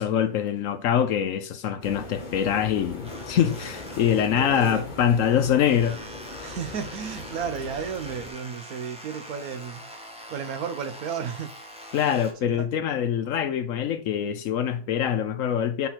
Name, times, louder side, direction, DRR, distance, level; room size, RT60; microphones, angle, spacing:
voice 1, 0.0-6.1 6.4-6.5 11.9-15.9, left 9 dB, 65° left, 0.9 m, -24 dB
sound 1, 1.8-8.3, left 3 dB, 35° left, 1.1 m, -40 dB
sound 2, 3.0-4.7 5.0-12.3, equal, 5° right, 0.8 m, -44 dB
voice 2, 4.3-4.9 6.4-11.5 12.5-12.7, right 7 dB, 75° right, 1.2 m, -33 dB
6.0 x 4.0 x 4.2 m
omnidirectional pair, 1.6 m